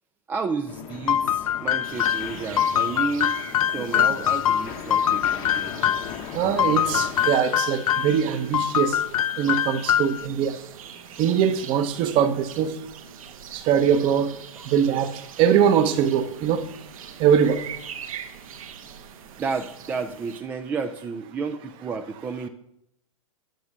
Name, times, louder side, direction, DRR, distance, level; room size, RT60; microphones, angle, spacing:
voice 1, 0.3-3.4 3.7-5.9 14.5-14.7 19.4-22.5, right 5 dB, 10° right, 0.4 m, -31 dB
sound 1, 0.7-7.3, left 8 dB, 30° left, 0.9 m, -39 dB
sound 2, 1.1-6.2 6.6-8.2 8.5-10.3, left 10 dB, 90° left, 0.6 m, -23 dB
sound 3, 1.8-20.4, right 8 dB, 80° right, 1.7 m, -42 dB
voice 2, 6.3-9.0 9.4-10.6 11.2-12.9 13.5-14.4 14.6-16.7 17.2-17.6, right 8 dB, 30° right, 0.9 m, -22 dB
10.5 x 6.8 x 6.6 m
hypercardioid pair, 155°, 18 cm